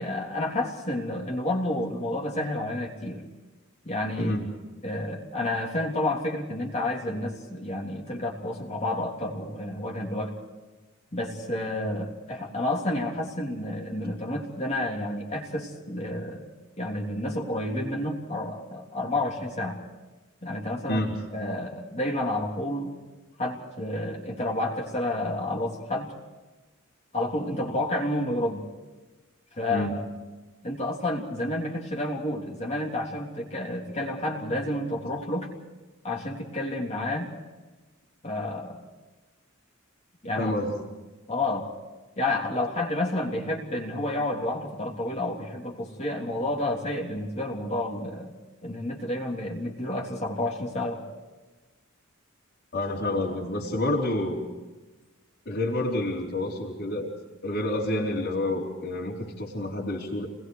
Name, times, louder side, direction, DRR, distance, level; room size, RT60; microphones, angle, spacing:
voice 1, 0.0-3.2 3.8-4.4 4.8-10.3 11.1-16.5 16.8-19.8 20.4-21.0 21.3-22.9 23.4-26.1 27.1-28.6 29.5-29.9 30.6-35.5 36.0-37.3 38.2-38.8 40.2-40.5 41.3-41.7 42.2-48.3 48.6-51.0, left 1 dB, 30° left, -1 dB, 3.4 m, -30 dB
voice 2, 4.2-4.5 20.9-21.2 29.7-30.0 40.4-40.7 52.7-54.4 55.5-57.1 57.4-60.3, left 1 dB, 50° left, -5 dB, 4.1 m, -28 dB
30.0 x 21.0 x 4.8 m, 1.2 s
head